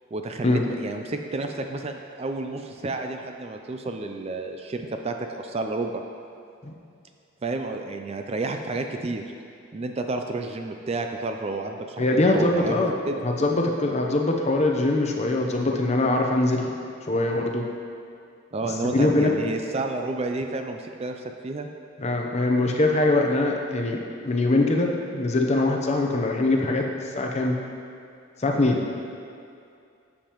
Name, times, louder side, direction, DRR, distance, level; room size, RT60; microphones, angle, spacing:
voice 1, 0.1-6.0 7.4-9.2 9.7-13.2 18.5-21.7, right 2 dB, 30° right, 5 dB, 0.4 m, -31 dB
voice 2, 12.0-12.9 13.2-16.7 17.1-17.6 18.9-19.3 22.0-24.0 24.2-26.9 27.1-27.6 28.4-28.8, left 2 dB, 35° left, 1 dB, 0.8 m, -22 dB
11.5 x 7.3 x 3.0 m, 2.4 s
head